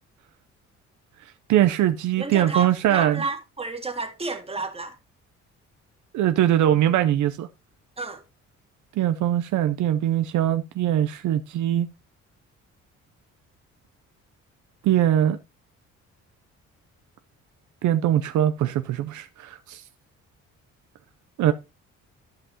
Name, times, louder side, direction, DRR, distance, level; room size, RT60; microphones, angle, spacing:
voice 1, 1.5-3.2 6.1-7.5 9.0-11.9 14.8-15.4 17.8-19.8 21.4-21.5, right 11 dB, 75° right, 0.6 m, -22 dB
voice 2, 2.2-5.0 8.0-8.2, right 3 dB, 20° right, 1.8 m, -31 dB
14.0 x 5.5 x 2.8 m
cardioid pair, 90°, 30 cm